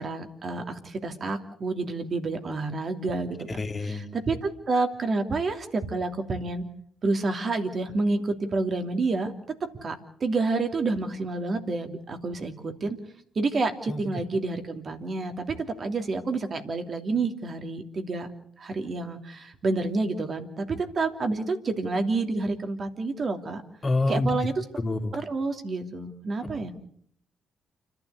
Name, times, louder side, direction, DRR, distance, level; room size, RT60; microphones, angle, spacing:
voice 1, 0.0-6.6 7.0-9.3 9.8-9.9 10.2-13.0 13.3-18.3 18.6-23.6 24.1-24.6 25.1-26.7, right 3 dB, 50° right, 6 dB, 3.0 m, -29 dB
voice 2, 3.6-4.1 13.9-14.0 23.8-24.3 24.8-25.1, left 2 dB, 35° left, 4 dB, 3.2 m, -26 dB
29.5 x 11.5 x 8.2 m, 0.63 s
hypercardioid pair, 50°, 0 cm